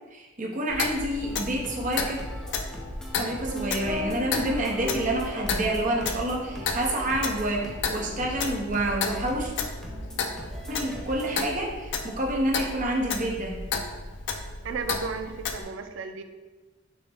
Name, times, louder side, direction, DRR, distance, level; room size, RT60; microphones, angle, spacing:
voice 1, 0.1-2.2 3.1-9.5 10.7-13.6, right 1 dB, 45° right, -1 dB, 0.7 m, -28 dB
Clock, 0.7-15.6, left 4 dB, 65° left, 0.4 m, -33 dB
sound 1, 1.2-11.3, equal, 5° left, 0.6 m, -41 dB
sound 2, 3.5-11.6, left 1 dB, 65° right, 0.9 m, -40 dB
voice 2, 14.6-16.2, right 5 dB, 85° right, 8 dB, 0.4 m, -34 dB
6.1 x 2.1 x 3.4 m, 1.2 s
head